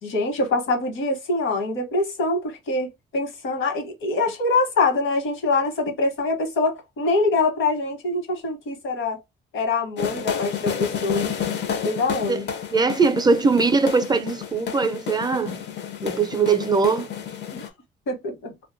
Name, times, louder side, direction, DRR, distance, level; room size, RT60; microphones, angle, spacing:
voice 1, 0.0-9.2 9.5-11.3 11.8-12.5 17.5-17.7 18.1-18.5, left 3 dB, 80° left, 1.1 m, -24 dB
sound 1, 10.0-17.7, left 8 dB, 60° left, 0.6 m, -30 dB
voice 2, 12.7-15.7 16.0-17.1, right 4 dB, 20° right, 0.5 m, -21 dB
2.4 x 2.2 x 2.6 m
cardioid pair, 90°, 20 cm